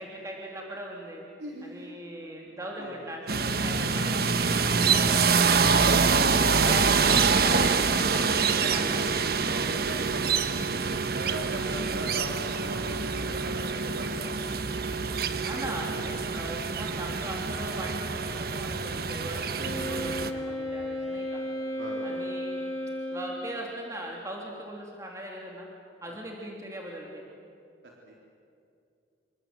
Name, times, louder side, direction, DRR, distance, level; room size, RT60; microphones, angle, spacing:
voice 1, 0.0-1.2 1.6-4.3 4.9-5.3 6.5-9.2 15.4-21.4 22.0-22.5 23.1-25.7 26.0-27.2, right 1 dB, 15° right, -1 dB, 3.2 m, -39 dB
voice 2, 1.4-1.9 2.8-3.0 4.8-5.6 9.5-10.7 11.1-14.4 21.8-22.2 26.1-26.3 28.1-28.2, right 1 dB, 75° right, -2 dB, 3.9 m, -40 dB
sound 1, 3.3-20.3, right 5 dB, 55° right, 1.2 m, -26 dB
Wind instrument woodwind instrument, 19.6-23.6, left 1 dB, 20° left, 6.8 m, -34 dB
28.0 x 26.0 x 8.1 m, 2.5 s
head